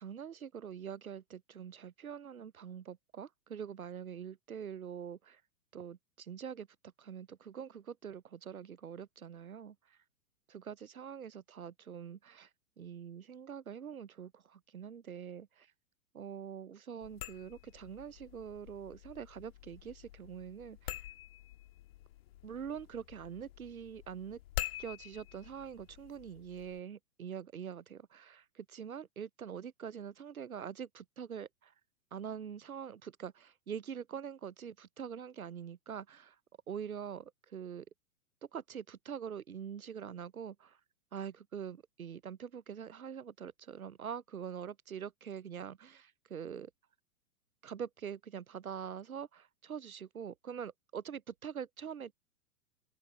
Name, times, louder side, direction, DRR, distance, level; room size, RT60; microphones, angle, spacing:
voice 1, 0.0-5.4 5.7-10.0 10.5-12.5 12.8-15.7 16.1-20.9 22.4-24.4 24.8-31.7 32.1-36.4 36.7-37.9 38.5-40.8 41.1-46.7 47.6-52.1, right 8 dB, 80° right, 0.7 m, -44 dB
sound 1, 17.0-26.8, left 14 dB, 45° left, 1.6 m, -47 dB
open air
figure-of-eight pair, 105°, 42 cm